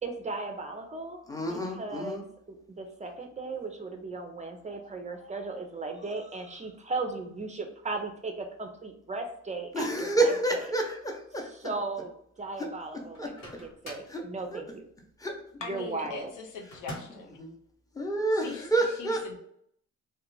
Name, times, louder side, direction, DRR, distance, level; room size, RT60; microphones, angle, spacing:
voice 1, 0.0-1.2 1.4-10.7 11.4-12.1 12.4-13.3 13.6-14.9 15.7-16.3, right 3 dB, 25° right, 4 dB, 0.4 m, -37 dB
voice 2, 1.3-2.2 9.7-11.5 13.2-13.3 14.1-14.2 14.5-14.6 15.2-15.3 17.4-17.5 18.0-19.2, right 2 dB, 10° left, 1 dB, 0.6 m, -28 dB
Microwave oven, 13.1-14.2 16.7-17.3, equal, 65° left, 1.1 m, -44 dB
voice 3, 15.6-17.4 18.3-19.4, left 4 dB, 85° left, 1 dB, 0.7 m, -41 dB
2.4 x 2.2 x 3.1 m, 0.69 s
cardioid pair, 90°, 30 cm